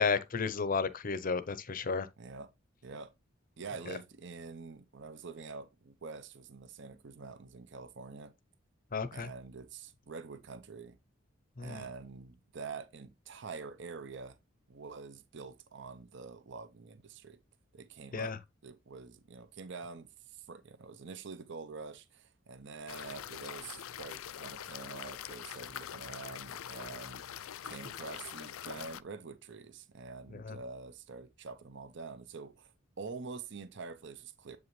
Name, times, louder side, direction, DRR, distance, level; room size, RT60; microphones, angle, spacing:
voice 1, 0.0-2.1 3.9-4.0 8.9-9.3 11.6-11.9 18.1-18.4 30.3-30.6, left 5 dB, 40° left, 0.7 m, -33 dB
voice 2, 2.2-2.5 2.8-3.1 3.6-8.3 9.1-11.0 11.6-14.4 14.7-17.4 17.7-18.4 18.6-34.6, right 4 dB, 60° right, 0.7 m, -46 dB
sound 1, 22.9-29.0, left 10 dB, 85° left, 0.4 m, -44 dB
7.8 x 5.4 x 3.1 m
head